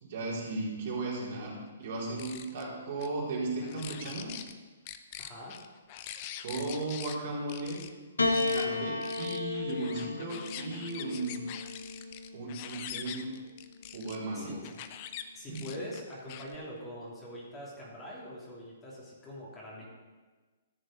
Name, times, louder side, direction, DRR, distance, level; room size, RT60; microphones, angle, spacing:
voice 1, 0.0-4.3 6.4-7.8 8.4-11.4 12.3-13.3 13.9-14.6 15.5-15.6, right 2 dB, 50° right, -5 dB, 4.2 m, -36 dB
sound 1, 2.0-2.6 3.0-3.1 3.6-4.5 4.9-7.2 7.5-7.9 8.3-8.7 9.0-14.2 14.6-15.2 15.5-16.6, left 11 dB, 40° left, 0.7 m, -44 dB
voice 2, 5.2-5.5 14.3-14.5 15.3-19.9, equal, 20° left, -5 dB, 3.1 m, -43 dB
Piano, 8.2-12.7 13.7-14.5, left 3 dB, 85° left, 1.2 m, -34 dB
13.5 x 6.6 x 5.1 m, 1.3 s
figure-of-eight pair, 130°, 0 cm